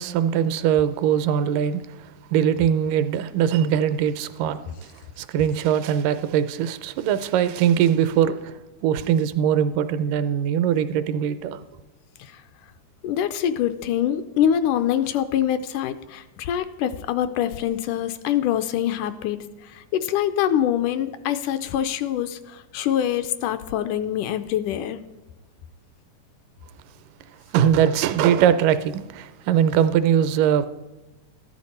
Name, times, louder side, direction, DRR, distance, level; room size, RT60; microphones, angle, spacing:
voice 1, 0.0-4.9 5.2-11.6 27.5-30.7, right 9 dB, 85° right, 2.2 m, -21 dB
voice 2, 13.0-25.0, left 10 dB, 80° left, 2.0 m, -25 dB
13.5 x 10.5 x 4.2 m
omnidirectional pair, 3.8 m